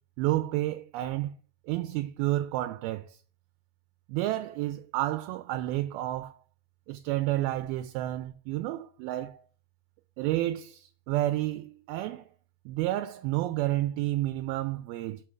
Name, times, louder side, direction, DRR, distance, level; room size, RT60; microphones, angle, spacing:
voice 1, 0.2-1.3 1.7-3.2 4.1-6.3 6.9-9.4 10.2-12.3 12.7-15.2, right 15 dB, 80° right, 2.4 m, -30 dB
6.1 x 6.0 x 4.5 m
omnidirectional pair, 4.6 m